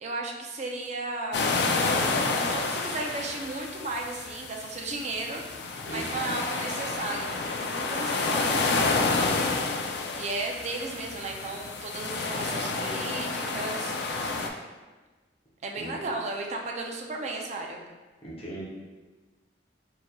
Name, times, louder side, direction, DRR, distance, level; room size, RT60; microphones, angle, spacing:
voice 1, 0.0-1.5 2.2-8.8 10.2-14.4 15.6-17.9, right 2 dB, 40° right, 1 dB, 0.4 m, -35 dB
sound 1, 1.3-14.5, left 3 dB, 65° left, 0.3 m, -29 dB
voice 2, 5.8-6.3 15.8-15.9 18.2-18.6, right 1 dB, 35° left, -6 dB, 0.8 m, -39 dB
3.8 x 3.0 x 2.2 m, 1.3 s
head